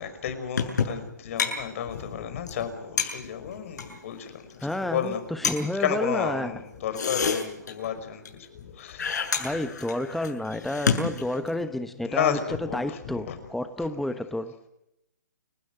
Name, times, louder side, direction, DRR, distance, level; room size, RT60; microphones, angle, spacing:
voice 1, 0.0-4.5 4.8-5.2 5.8-8.2 8.6-9.3 12.0-13.4, left 8 dB, 45° left, 9 dB, 5.6 m, -32 dB
sound 1, 0.6-1.1 1.4-1.5 1.8-1.9 2.2-2.3 2.5-2.6 3.0-4.0 4.5-4.7 5.0-5.1 5.4-5.6 6.8-8.0 8.3-8.7 9.0-11.6, left 6 dB, 70° left, 7.2 m, -28 dB
voice 2, 4.6-6.5 9.4-14.5, left 1 dB, ahead, 10 dB, 1.1 m, -30 dB
29.5 x 16.5 x 7.7 m, 0.84 s
figure-of-eight pair, 130°, 10 cm